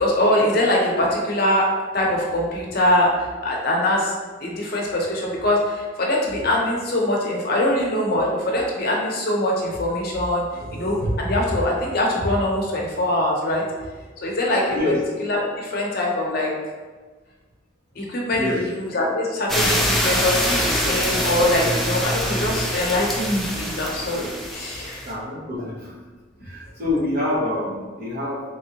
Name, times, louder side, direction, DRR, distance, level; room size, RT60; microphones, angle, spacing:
voice 1, 0.0-1.7 1.9-3.1 3.4-4.1 4.4-13.6 14.2-14.8 15.2-16.5 18.0-19.8 20.0-25.1, left 1 dB, 50° left, -2 dB, 0.7 m, -23 dB
voice 2, 14.7-15.0 18.3-18.6 25.0-25.9 26.4-28.4, left 2 dB, 50° right, -4 dB, 0.9 m, -26 dB
sound 1, 19.5-25.1, equal, ahead, 0.3 m, -24 dB
3.7 x 3.1 x 2.8 m, 1.3 s
head